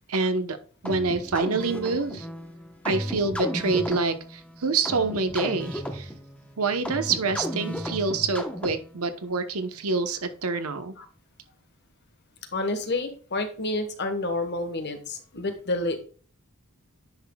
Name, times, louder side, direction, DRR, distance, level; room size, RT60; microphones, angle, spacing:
voice 1, 0.1-0.6 0.8-2.3 2.8-6.1 6.6-10.9, right 4 dB, 80° right, 9 dB, 1.0 m, -26 dB
sound 1, 0.8-9.1, equal, 5° left, 1.0 m, -34 dB
voice 2, 12.5-16.0, left 2 dB, 50° left, 7 dB, 1.3 m, -29 dB
10.0 x 5.9 x 2.3 m, 0.41 s
head